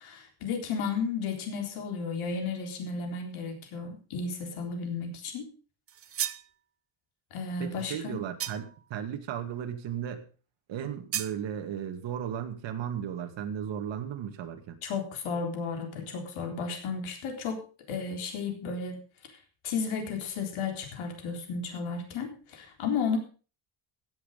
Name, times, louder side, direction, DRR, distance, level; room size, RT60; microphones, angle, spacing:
voice 1, 0.0-5.5 7.3-8.2 14.8-17.6 17.9-19.0 19.6-23.2, left 5 dB, 90° left, 4 dB, 3.8 m, -33 dB
sound 1, 5.9-6.5 8.4-8.8 11.1-11.4, right 9 dB, 30° right, 0.5 m, -34 dB
voice 2, 7.6-10.2 10.7-14.8, right 9 dB, 65° right, 6 dB, 2.3 m, -35 dB
16.5 x 7.9 x 5.3 m, 0.37 s
cardioid pair, 160°, 48 cm